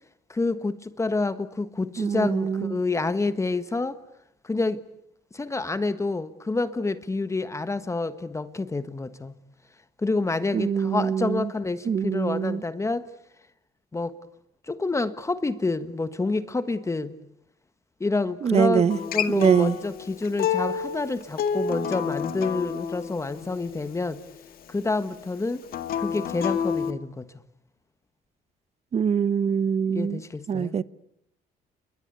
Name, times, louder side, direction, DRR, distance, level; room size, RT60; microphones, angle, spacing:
voice 1, 0.3-4.0 4.4-4.8 5.3-9.3 10.0-13.1 13.9-14.2 14.7-17.1 18.0-24.2 24.7-25.6 26.0-27.3 29.9-30.7, left 3 dB, 15° left, 1.5 m, -28 dB
voice 2, 2.0-2.8 10.5-11.5 11.9-12.6 18.4-19.0 19.3-19.7 28.9-30.2 30.5-30.8, right 7 dB, 40° right, 1.0 m, -23 dB
Acoustic guitar, 18.9-24.1 25.7-26.9, left 7 dB, 60° left, 2.1 m, -29 dB
30.0 x 22.0 x 8.3 m
cardioid pair, 110°, 17 cm